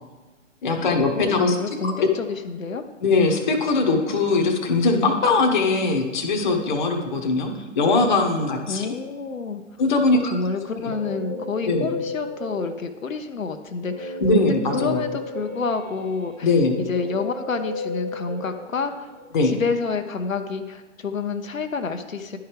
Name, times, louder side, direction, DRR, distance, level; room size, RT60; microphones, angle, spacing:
voice 1, 0.6-2.1 3.0-7.5 7.7-8.9 9.8-10.3 10.8-10.9 11.6-11.9 14.2-15.0 16.4-16.8 19.3-19.5, left 3 dB, 40° left, 4 dB, 0.9 m, -21 dB
voice 2, 1.2-2.8 8.7-9.6 10.1-14.5 14.7-16.6 16.9-19.1 19.4-22.4, left 4 dB, 90° left, 7 dB, 0.6 m, -29 dB
Guitar, 10.5-13.1 13.8-19.3, left 2 dB, 35° right, 0.8 m, -34 dB
11.0 x 4.6 x 3.3 m, 1.2 s
figure-of-eight pair, 130°, 39 cm